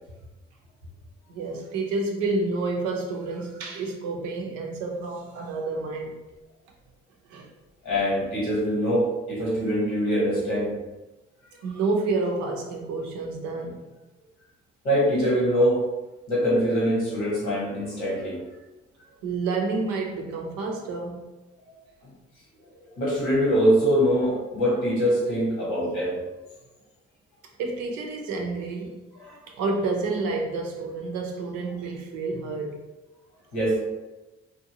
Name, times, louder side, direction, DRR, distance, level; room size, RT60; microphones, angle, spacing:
voice 1, 1.3-6.2 7.3-7.5 11.6-13.8 19.2-21.3 27.6-29.0 29.5-32.8, right 3 dB, 85° right, 1 dB, 0.5 m, -29 dB
voice 2, 7.8-10.7 14.8-15.8 16.3-18.4 21.6-21.7 23.0-26.2 29.2-29.4 33.5-33.9, equal, 85° left, -5 dB, 1.1 m, -23 dB
2.7 x 2.2 x 2.7 m, 1.0 s
hypercardioid pair, 45°, 29 cm